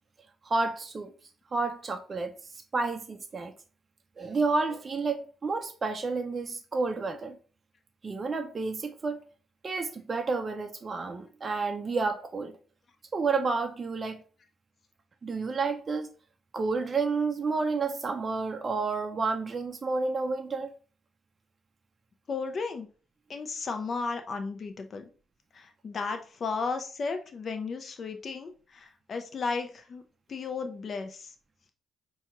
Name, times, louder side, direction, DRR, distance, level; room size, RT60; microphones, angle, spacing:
voice 1, 0.4-1.1 1.5-2.3 2.7-3.5 4.2-7.4 8.0-9.2 9.6-12.5 13.1-14.2 15.2-16.1 16.5-20.7, right 4 dB, 35° right, 0.4 m, -30 dB
voice 2, 22.3-22.9 23.3-25.1 25.5-30.0 30.3-31.3, left 4 dB, 45° left, 0.5 m, -34 dB
5.6 x 2.3 x 2.9 m
cardioid pair, 90°, 0 cm